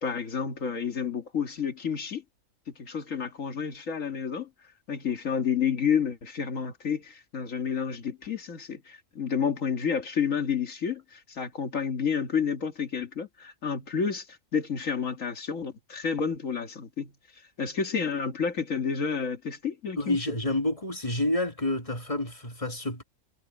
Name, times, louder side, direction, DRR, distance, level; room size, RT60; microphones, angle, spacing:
voice 1, 0.0-2.2 2.7-4.5 4.9-17.1 17.6-20.3, left 6 dB, 60° left, 2.3 m, -30 dB
voice 2, 20.0-23.0, left 1 dB, 25° left, 1.9 m, -29 dB
omnidirectional pair, 1.6 m